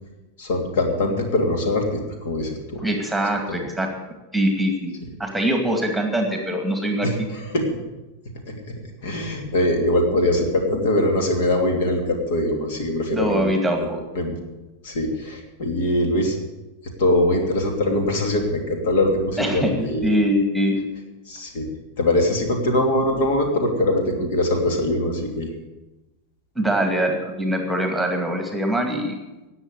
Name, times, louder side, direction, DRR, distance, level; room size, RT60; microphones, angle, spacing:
voice 1, 0.4-2.8 3.5-3.6 7.0-7.1 7.4-7.8 8.5-8.6 9.0-13.9 14.1-14.3 14.8-16.4 17.0-20.1 21.3-21.7 22.0-25.5, left 1 dB, 55° left, 3 dB, 2.9 m, -22 dB
voice 2, 2.8-3.9 4.3-4.9 5.2-7.1 13.1-14.0 19.4-20.8 26.6-29.2, equal, ahead, 3 dB, 2.3 m, -23 dB
18.5 x 7.4 x 8.3 m, 1.1 s
figure-of-eight pair, 90°, 0 cm